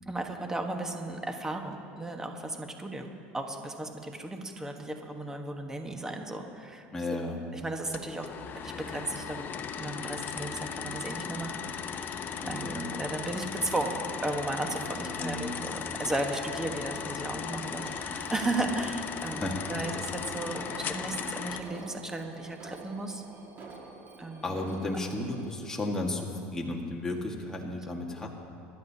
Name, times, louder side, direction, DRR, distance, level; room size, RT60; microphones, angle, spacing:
voice 1, 0.1-6.9 7.5-8.3 8.6-9.5 9.8-12.1 12.5-19.4 19.7-23.2 24.2-24.6, right 2 dB, 10° right, 3 dB, 1.3 m, -35 dB
voice 2, 6.9-7.4 12.4-12.9 14.9-15.6 19.4-19.7 24.4-28.3, left 2 dB, 10° left, -1 dB, 1.6 m, -34 dB
sound 1, 7.9-21.6, left 7 dB, 40° left, 0.8 m, -37 dB
Alarm, 17.7-25.5, right 3 dB, 40° right, 2.0 m, -48 dB
24.5 x 11.5 x 2.8 m, 2.5 s
supercardioid pair, 110°, 5 cm